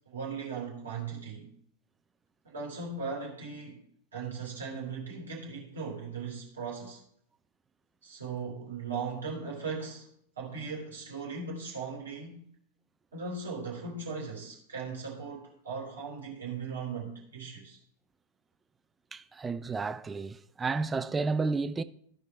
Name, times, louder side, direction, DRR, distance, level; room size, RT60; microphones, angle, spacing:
voice 1, 0.0-1.5 2.4-3.8 4.1-7.0 8.0-10.1 10.3-12.4 13.1-17.8, right 5 dB, 70° right, 3.4 m, -38 dB
voice 2, 19.1-21.8, right 4 dB, 15° right, 0.5 m, -31 dB
14.0 x 5.1 x 4.3 m
figure-of-eight pair, 90°, 0 cm